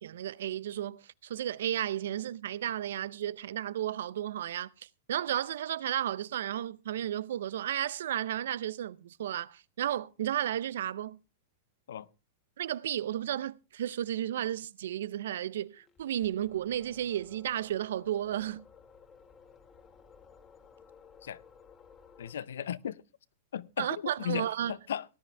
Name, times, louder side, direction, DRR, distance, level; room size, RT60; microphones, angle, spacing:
voice 1, 0.0-4.7 5.1-11.2 12.6-18.6 23.8-24.7, right 11 dB, 80° right, 0.5 m, -33 dB
sound 1, 15.6-22.3, left 6 dB, 25° left, 2.0 m, -57 dB
voice 2, 22.2-23.0 23.5-25.0, left 9 dB, 85° left, 0.7 m, -36 dB
18.5 x 10.5 x 3.3 m
hypercardioid pair, 135°, 0 cm